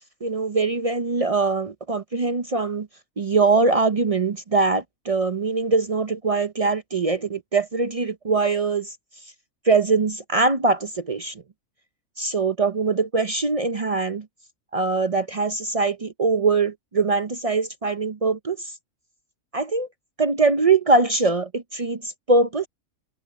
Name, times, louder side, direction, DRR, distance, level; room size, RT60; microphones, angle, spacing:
voice 1, 0.2-2.9 3.2-8.9 9.7-11.3 12.2-14.3 14.7-18.7 19.5-19.9 20.2-22.7, right 3 dB, 45° right, 0.4 m, -22 dB
omnidirectional pair, 1.5 m